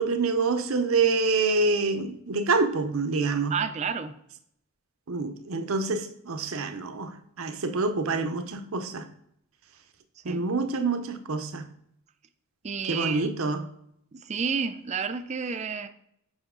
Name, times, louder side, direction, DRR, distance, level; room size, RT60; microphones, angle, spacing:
voice 1, 0.0-3.6 5.1-9.1 10.3-11.7 12.9-13.7, right 3 dB, 70° right, 0.8 m, -26 dB
voice 2, 3.5-4.1 10.2-10.4 12.6-13.3 14.1-15.9, right 6 dB, 30° right, 0.5 m, -30 dB
7.1 x 5.7 x 3.7 m
head